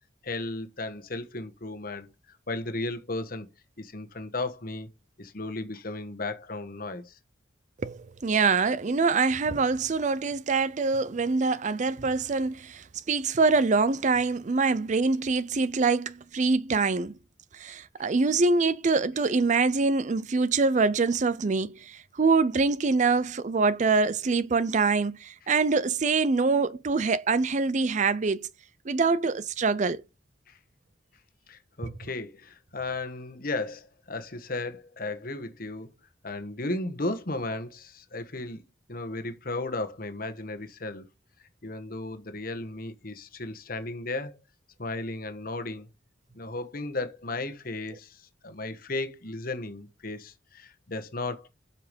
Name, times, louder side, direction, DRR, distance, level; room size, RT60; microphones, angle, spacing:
voice 1, 0.2-3.5 3.8-4.9 5.2-7.2 30.5-30.6 31.5-35.9 36.2-38.6 38.9-41.1 41.4-44.4 44.8-45.9 46.3-51.5, left 2 dB, 50° left, 1.3 m, -35 dB
voice 2, 7.8-17.1 17.5-28.5 28.9-30.0 31.8-31.9, right 4 dB, 40° right, 0.5 m, -25 dB
7.7 x 5.8 x 5.2 m
head